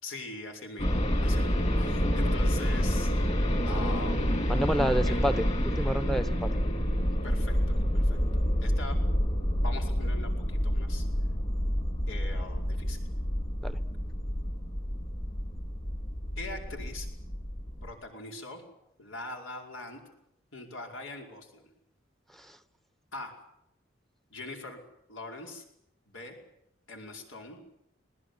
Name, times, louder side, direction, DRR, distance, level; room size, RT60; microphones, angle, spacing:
voice 1, 0.0-3.1 3.7-4.4 5.1-5.2 7.2-8.2 8.6-9.0 9.6-11.1 12.1-13.0 16.4-17.1 17.8-18.6 19.0-20.0 20.5-21.6 23.1-23.3 24.3-24.8 25.1-25.6 26.1-26.4 26.9-27.6, left 2 dB, 85° left, 2 dB, 5.2 m, -42 dB
sound 1, 0.8-17.9, equal, 35° left, 3.6 m, -28 dB
voice 2, 4.5-6.6 13.6-13.8 22.3-22.6, right 1 dB, ahead, 12 dB, 0.9 m, -30 dB
20.5 x 19.5 x 9.7 m, 0.80 s
head